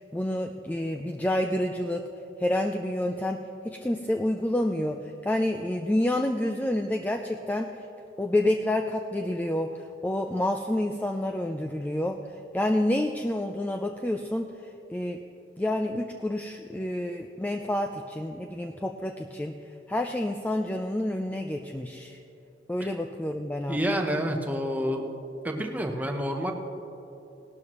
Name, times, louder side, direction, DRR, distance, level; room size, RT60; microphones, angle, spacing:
voice 1, 0.0-2.1 2.4-3.4 3.6-7.9 8.2-15.2 15.6-19.6 19.9-22.2 22.7-23.8, left 1 dB, 10° left, 4 dB, 0.3 m, -29 dB
voice 2, 23.7-25.0 25.4-26.5, equal, 10° right, 3 dB, 0.8 m, -28 dB
18.0 x 12.5 x 3.0 m, 2.9 s
head